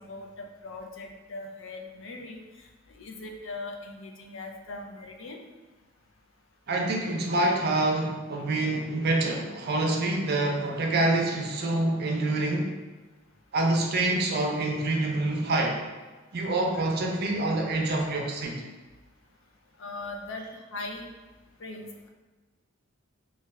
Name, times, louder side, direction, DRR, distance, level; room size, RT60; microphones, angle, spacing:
voice 1, 0.0-2.4 3.0-5.4 19.8-20.5 20.7-21.1 21.6-22.1, left 2 dB, 70° left, 2 dB, 0.5 m, -40 dB
voice 2, 6.7-12.7 13.5-15.8 16.3-18.6, right 2 dB, 55° right, 0 dB, 0.5 m, -26 dB
3.1 x 2.3 x 3.3 m, 1.3 s
head